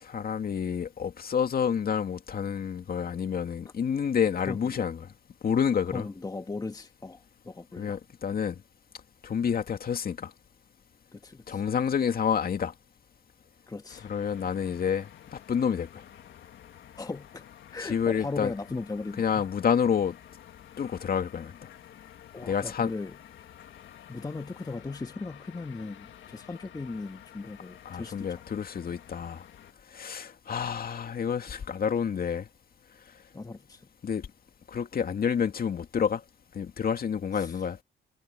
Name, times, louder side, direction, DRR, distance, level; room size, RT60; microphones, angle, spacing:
voice 1, 0.0-5.1 5.4-6.1 7.8-8.6 9.2-10.3 11.5-12.7 14.0-16.0 17.8-18.5 19.2-20.2 20.8-21.5 22.4-22.9 27.8-29.5 29.9-32.5 34.0-34.3 34.7-36.2 36.5-37.8, left 7 dB, 50° left, 2.3 m, -29 dB
voice 2, 4.5-4.9 5.9-8.0 11.1-11.6 13.7-14.1 17.0-19.4 22.3-23.2 24.1-28.4 33.3-33.9 37.3-37.6, left 3 dB, 20° left, 1.5 m, -38 dB
sound 1, 13.9-29.7, left 10 dB, 70° left, 2.3 m, -51 dB
cardioid pair, 90°, 20 cm